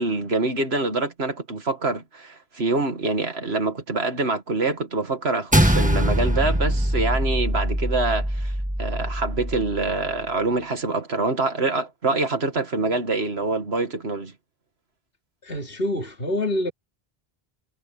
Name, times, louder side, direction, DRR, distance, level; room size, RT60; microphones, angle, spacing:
voice 1, 0.0-8.5 8.8-14.3, right 3 dB, 85° right, 2.4 m, -25 dB
sound 1, 5.5-10.1, equal, 5° right, 1.8 m, -23 dB
voice 2, 15.4-16.7, left 1 dB, 70° left, 3.4 m, -26 dB
omnidirectional pair, 1.0 m